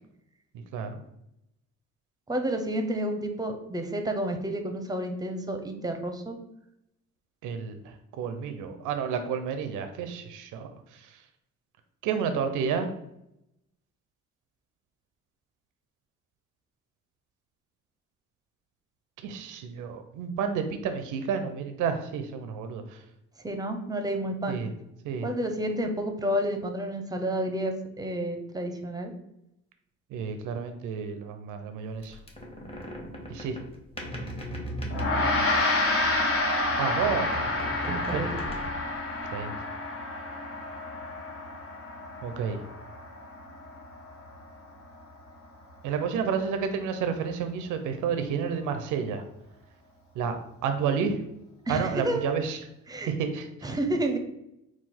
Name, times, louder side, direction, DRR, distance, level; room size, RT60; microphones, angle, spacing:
voice 1, 2.3-6.4 23.4-24.6 25.2-29.1 37.9-38.4 51.7-52.4 52.9-53.1 53.6-54.2, right 1 dB, 15° right, 5 dB, 0.6 m, -30 dB
voice 2, 7.4-7.8 8.2-10.7 12.0-12.9 19.2-22.8 24.5-24.7 25.0-25.3 30.1-32.2 33.3-33.6 36.8-37.3 37.9-38.3 39.3-39.5 42.2-42.6 45.8-49.2 50.2-50.4 50.6-51.2 51.7-52.6 53.1-53.5, right 6 dB, 90° right, 7 dB, 0.5 m, -30 dB
sound 1, 32.0-36.2 36.6-39.0, equal, 20° left, 1.2 m, -37 dB
Gong, 34.9-44.5, left 2 dB, 45° left, 0.9 m, -29 dB
3.9 x 2.4 x 4.3 m, 0.82 s
cardioid pair, 90°, 30 cm